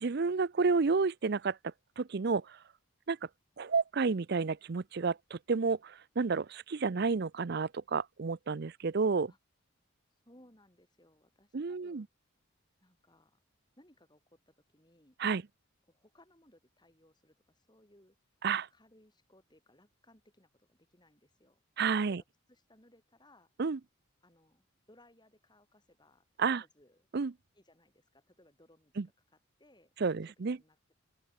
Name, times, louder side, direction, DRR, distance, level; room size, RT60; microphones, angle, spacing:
voice 1, 0.0-1.6 2.0-2.6 3.1-3.2 3.6-9.3 11.5-12.0 15.2-15.4 18.4-18.7 21.8-22.2 23.6-23.8 26.4-26.6 27.1-27.3 29.0-29.1 30.0-30.6, right 4 dB, 50° right, 0.5 m, -30 dB
voice 2, 10.2-12.1 12.8-13.4 13.8-15.2 15.9-18.2 18.7-21.6 22.1-23.5 24.2-27.1 27.5-28.9 29.3-29.9 30.2-31.0, left 1 dB, 20° left, 6.4 m, -64 dB
open air
head